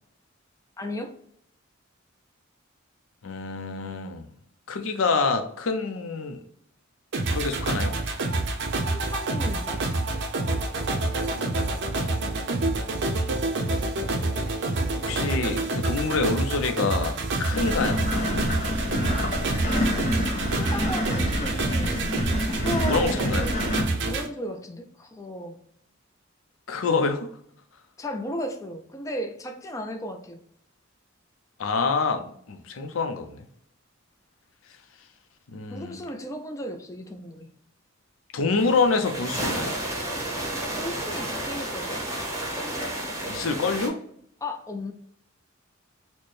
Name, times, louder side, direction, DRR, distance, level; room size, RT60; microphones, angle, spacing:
voice 1, 0.8-1.2 8.8-9.8 20.5-23.6 24.0-25.6 28.0-30.4 35.7-37.5 40.8-42.0 44.4-44.9, left 1 dB, 15° left, 0.4 m, -35 dB
voice 2, 3.2-4.3 4.7-6.4 7.3-8.0 11.3-11.8 15.0-18.0 22.8-23.5 26.7-27.3 31.6-33.5 35.5-36.0 38.3-39.7 43.3-44.0, left 4 dB, 85° left, 0.5 m, -27 dB
sound 1, 7.1-24.3, right 2 dB, 60° right, 0.6 m, -27 dB
sound 2, 17.5-23.8, left 1 dB, 35° left, 0.8 m, -28 dB
sound 3, 38.6-43.9, right 1 dB, 15° right, 0.7 m, -31 dB
4.3 x 2.1 x 3.2 m
head